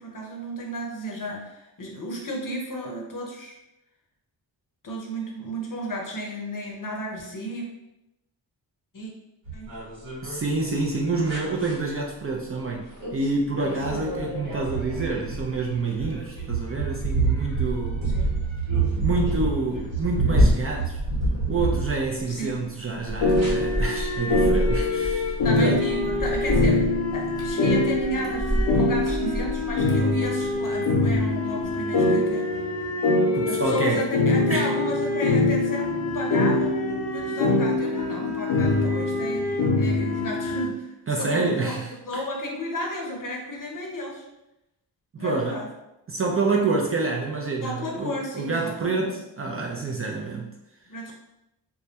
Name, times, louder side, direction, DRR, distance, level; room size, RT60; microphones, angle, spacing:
voice 1, 0.0-3.6 4.8-7.7 8.9-9.1 9.5-9.7 18.0-18.4 22.3-22.7 25.4-32.7 33.5-36.8 37.1-41.8 42.0-44.3 45.2-45.7 47.6-49.2 50.9-51.1, equal, 45° left, 0 dB, 0.7 m, -33 dB
sound 1, 9.5-10.4 11.3-11.7 13.0-13.3 13.6-22.4 23.4-23.5, right 2 dB, 80° right, 1.1 m, -26 dB
voice 2, 10.2-18.1 19.0-21.0 21.5-25.8 33.3-34.0 34.5-34.7 41.1-41.9 45.1-45.6 46.1-50.5, right 3 dB, 30° right, -2 dB, 0.4 m, -27 dB
sound 2, 14.6-31.3 31.6-32.1, equal, 10° left, 1.0 m, -32 dB
sound 3, 23.2-40.7, left 2 dB, 90° left, 0.6 m, -24 dB
2.2 x 2.1 x 2.7 m, 0.90 s
cardioid pair, 45°, 46 cm